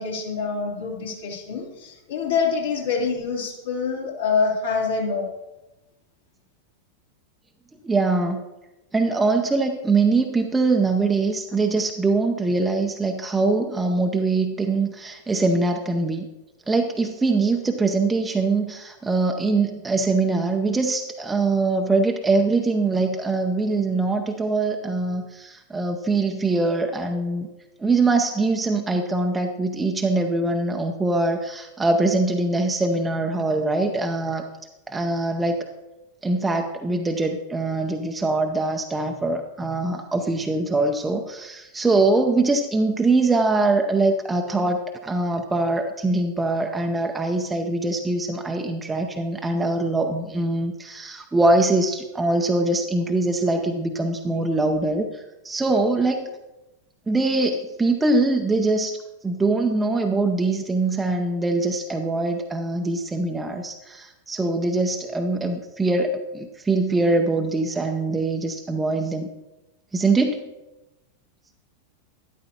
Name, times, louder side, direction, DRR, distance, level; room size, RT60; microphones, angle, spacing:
voice 1, 0.0-5.3, left 5 dB, 65° left, -2 dB, 3.0 m, -25 dB
voice 2, 7.8-8.4 8.9-16.3 16.7-27.5 27.8-34.4 34.9-35.7 36.2-56.3 57.1-69.3 69.9-70.4, right 3 dB, 10° right, 4 dB, 0.7 m, -23 dB
12.5 x 11.0 x 2.9 m, 1.0 s
figure-of-eight pair, 90°, 0 cm